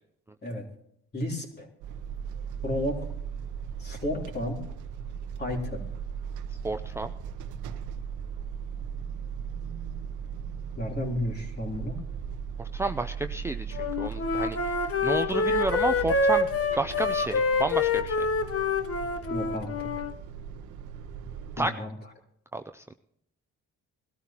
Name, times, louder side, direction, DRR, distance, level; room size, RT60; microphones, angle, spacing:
voice 1, 1.1-1.7 2.6-3.0 3.8-4.6 5.4-5.8 10.8-12.0 19.3-19.9 21.6-21.9, left 1 dB, 35° left, 0 dB, 3.5 m, -32 dB
sound 1, 1.8-21.6, right 7 dB, 85° right, 0.8 m, -38 dB
voice 2, 6.6-7.1 12.6-16.5 16.8-18.3 21.6-21.8 22.5-22.9, right 2 dB, 10° right, 7 dB, 0.5 m, -31 dB
Wind instrument woodwind instrument, 13.7-20.1, left 3 dB, 50° left, 1.0 m, -26 dB
20.0 x 13.0 x 3.0 m, 0.73 s
cardioid pair, 90°, 30 cm